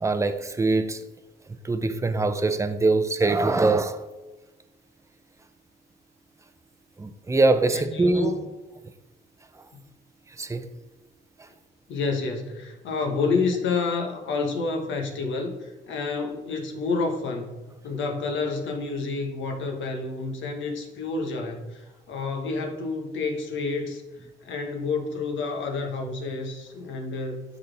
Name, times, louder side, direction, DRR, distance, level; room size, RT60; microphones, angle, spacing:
voice 1, 0.0-1.0 1.6-4.0 7.0-8.3 10.4-10.6, right 3 dB, 15° right, 0.6 m, -23 dB
voice 2, 7.7-8.5 9.7-9.8 11.9-24.0 24.4-27.4, left 4 dB, 70° left, 1.3 m, -29 dB
11.5 x 4.1 x 3.4 m
cardioid pair, 90°, 20 cm